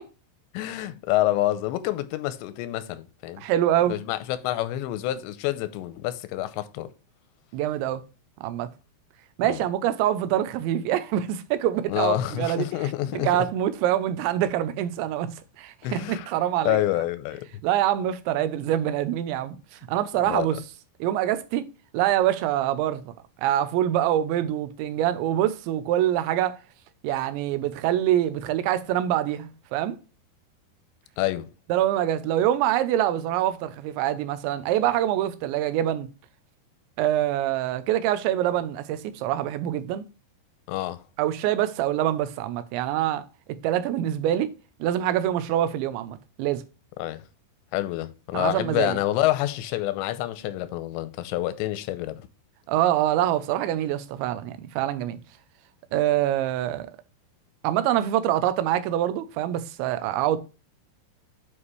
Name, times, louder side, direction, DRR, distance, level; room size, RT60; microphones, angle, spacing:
voice 1, 0.5-3.5 3.9-6.9 9.4-9.6 11.9-13.5 15.8-16.3 16.7-17.5 20.2-20.6 31.2-31.5 40.7-41.0 47.0-47.2 47.7-52.2, left 14 dB, 90° left, 2.9 m, -27 dB
voice 2, 3.4-4.0 7.5-8.0 8.4-8.7 9.4-12.7 13.1-15.3 15.6-16.8 17.6-19.6 19.9-20.6 21.0-21.6 21.9-23.1 23.4-26.6 27.0-30.0 31.7-36.1 37.0-40.1 41.2-43.2 43.6-44.5 44.8-46.6 48.3-49.0 52.7-55.2 55.9-56.9 57.6-60.4, right 12 dB, 85° right, 3.1 m, -25 dB
9.8 x 4.9 x 3.2 m
omnidirectional pair, 5.1 m